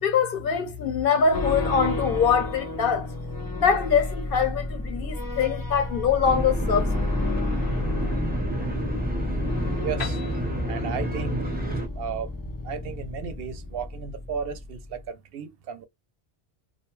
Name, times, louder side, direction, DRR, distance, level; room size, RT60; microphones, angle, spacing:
voice 1, 0.0-3.1 3.5-7.1, left 6 dB, 65° left, 0.8 m, -23 dB
sound 1, 1.3-15.0, left 2 dB, 35° left, 0.3 m, -31 dB
sound 2, 6.2-11.9, right 2 dB, 10° right, 0.7 m, -31 dB
voice 2, 9.8-10.2 10.7-11.5 11.9-12.3 12.6-15.9, right 6 dB, 70° right, 0.7 m, -34 dB
Piano, 10.0-13.6, left 5 dB, 80° left, 1.1 m, -42 dB
2.4 x 2.2 x 3.0 m
omnidirectional pair, 1.1 m